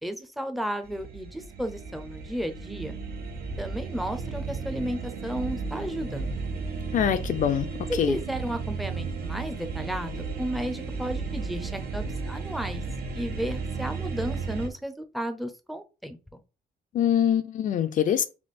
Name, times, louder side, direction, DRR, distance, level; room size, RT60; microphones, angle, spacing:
voice 1, 0.0-3.0 3.6-6.4 8.1-12.8 13.1-16.2, right 1 dB, ahead, 0.5 m, -33 dB
sound 1, 0.8-14.7, right 4 dB, 75° right, 0.9 m, -34 dB
voice 2, 6.9-7.7 8.0-8.2 16.9-18.2, left 9 dB, 50° left, 0.4 m, -24 dB
3.5 x 2.9 x 4.1 m
cardioid pair, 135°, 17 cm